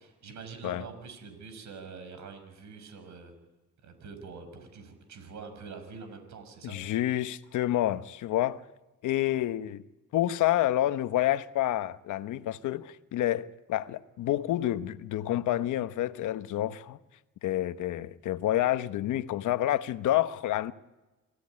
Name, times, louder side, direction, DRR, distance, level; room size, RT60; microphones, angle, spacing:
voice 1, 0.0-3.3 3.8-6.8, right 5 dB, 70° right, 6.3 m, -45 dB
voice 2, 6.6-8.6 9.0-9.8 10.1-17.0 17.4-20.7, left 13 dB, 80° left, 1.1 m, -28 dB
27.5 x 16.5 x 9.7 m
cardioid pair, 90°, 30 cm